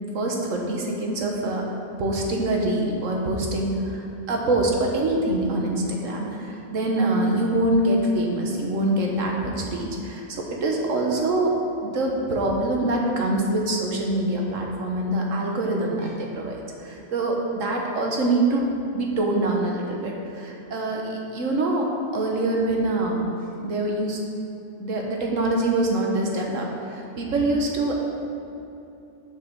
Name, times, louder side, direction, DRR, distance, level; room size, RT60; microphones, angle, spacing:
voice 1, 0.1-1.7 2.0-11.5 11.8-18.7 18.9-24.2 24.8-28.0, right 2 dB, 85° right, 0 dB, 1.5 m, -25 dB
7.3 x 6.6 x 6.0 m, 2.8 s
omnidirectional pair, 1.3 m